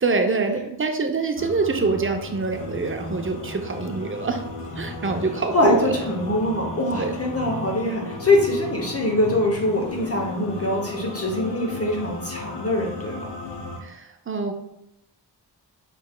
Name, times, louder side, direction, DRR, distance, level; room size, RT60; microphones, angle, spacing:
voice 1, 0.0-4.4 4.8-5.9 6.9-7.2 13.8-14.5, right 4 dB, 30° right, 5 dB, 0.6 m, -25 dB
sound 1, 1.4-13.8, left 3 dB, 75° left, 0.7 m, -35 dB
voice 2, 5.5-13.3, left 1 dB, 35° left, 0 dB, 0.8 m, -23 dB
4.5 x 3.3 x 2.2 m, 0.85 s
cardioid pair, 45°, 43 cm